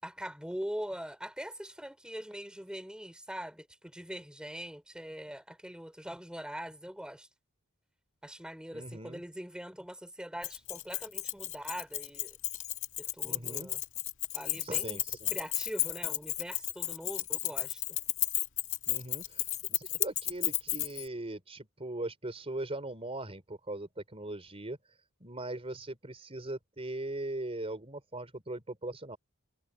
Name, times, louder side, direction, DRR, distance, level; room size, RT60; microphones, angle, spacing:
voice 1, 0.0-7.3 8.2-12.4 13.0-13.8 14.3-15.0 15.3-18.0, equal, 5° right, 4.8 m, -42 dB
voice 2, 8.7-9.2 13.2-13.7 14.6-15.3 18.9-24.8 25.2-29.2, right 2 dB, 25° right, 4.1 m, -40 dB
Keys jangling, 10.4-21.1, left 16 dB, 60° left, 2.1 m, -33 dB
head